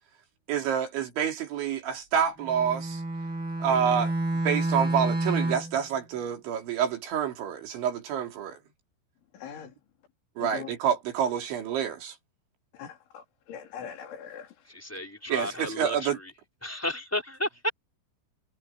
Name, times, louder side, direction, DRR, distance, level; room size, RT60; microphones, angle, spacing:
voice 1, 0.5-3.0 3.6-4.1 4.5-8.6 10.4-12.2 15.3-16.2, right 8 dB, 65° right, 5.3 m, -28 dB
Bowed string instrument, 2.4-5.8, right 2 dB, 25° right, 8.3 m, -29 dB
voice 2, 9.3-9.7 10.4-10.7 12.8-14.5, left 8 dB, 65° left, 5.9 m, -41 dB
voice 3, 14.9-15.9 16.6-17.7, left 1 dB, 5° left, 2.8 m, -32 dB
omnidirectional pair, 5.8 m